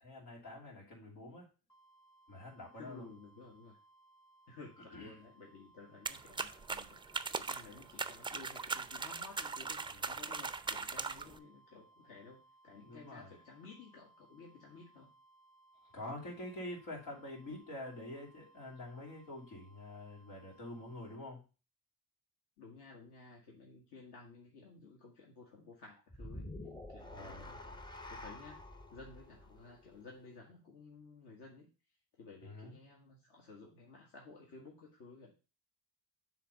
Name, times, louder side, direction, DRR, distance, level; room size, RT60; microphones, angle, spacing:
voice 1, 0.0-1.5 2.3-3.1 4.9-5.2 9.9-10.0 12.8-13.3 15.8-21.4 27.1-27.5 32.4-32.7, left 1 dB, 80° left, -2 dB, 2.7 m, -47 dB
sound 1, 1.7-21.2, right 2 dB, 45° left, 2.4 m, -66 dB
voice 2, 2.7-3.8 4.5-15.1 22.6-26.5 26.9-27.8 28.1-28.6 28.9-31.7 32.1-35.4, left 4 dB, 60° left, -1 dB, 1.6 m, -55 dB
sound 2, 6.1-11.4, right 4 dB, 10° right, 0.4 m, -40 dB
sound 3, 26.1-30.5, left 1 dB, 10° left, 0.7 m, -49 dB
7.3 x 3.1 x 5.1 m, 0.33 s
supercardioid pair, 65°, 44 cm